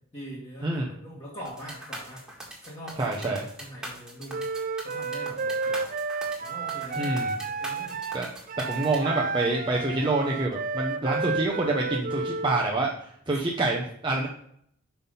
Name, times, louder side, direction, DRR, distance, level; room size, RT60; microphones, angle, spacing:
voice 1, 0.1-4.4 4.8-5.9 6.4-7.2 7.5-8.0 13.3-13.4, equal, 30° left, -7 dB, 1.7 m, -42 dB
sound 1, 1.4-9.0, right 1 dB, 5° right, 1.8 m, -41 dB
voice 2, 3.0-3.4 7.0-7.3 8.1-8.3 8.6-14.3, right 2 dB, 20° right, -2 dB, 0.8 m, -27 dB
Wind instrument woodwind instrument, 4.3-12.6, right 4 dB, 40° right, 0.4 m, -31 dB
5.9 x 5.8 x 5.4 m, 0.68 s
head